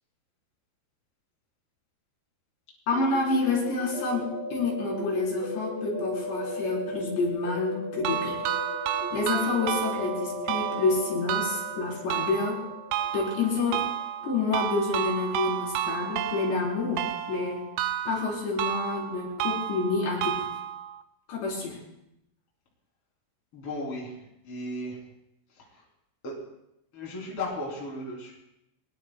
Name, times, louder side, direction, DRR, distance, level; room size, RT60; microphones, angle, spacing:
voice 1, 2.9-8.4 8.8-12.6 13.1-13.8 14.2-17.7 18.1-20.5 21.3-21.8, left 3 dB, 80° left, -3 dB, 6.5 m, -28 dB
sound 1, 2.9-14.6, left 1 dB, 15° right, 0.8 m, -37 dB
sound 2, 8.0-21.0, right 12 dB, 85° right, 3.0 m, -32 dB
voice 2, 23.5-25.0 25.5-25.9 26.2-26.3 26.9-28.3, left 1 dB, 35° left, -3 dB, 4.1 m, -36 dB
23.5 x 20.5 x 2.3 m, 0.82 s
omnidirectional pair, 4.9 m